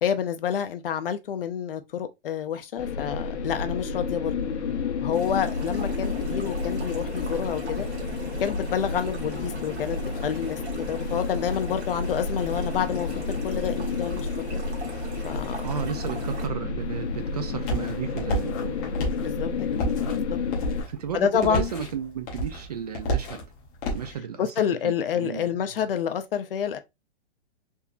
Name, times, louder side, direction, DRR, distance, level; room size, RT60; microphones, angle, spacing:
voice 1, 0.0-4.3 5.0-7.9 8.4-14.6 15.2-15.7 19.2-19.5 20.1-20.4 21.1-21.7 24.4-26.8, left 8 dB, 55° left, 0.6 m, -28 dB
sound 1, 2.8-20.8, left 4 dB, 85° left, 0.9 m, -30 dB
sound 2, 5.1-16.5, right 4 dB, 75° right, 1.4 m, -42 dB
voice 2, 15.6-18.8 20.9-23.5 23.9-24.5 24.8-25.5, right 8 dB, 40° right, 0.4 m, -33 dB
sound 3, 16.8-24.1, right 1 dB, 15° left, 0.6 m, -32 dB
3.7 x 2.7 x 2.4 m
hypercardioid pair, 165°, 33 cm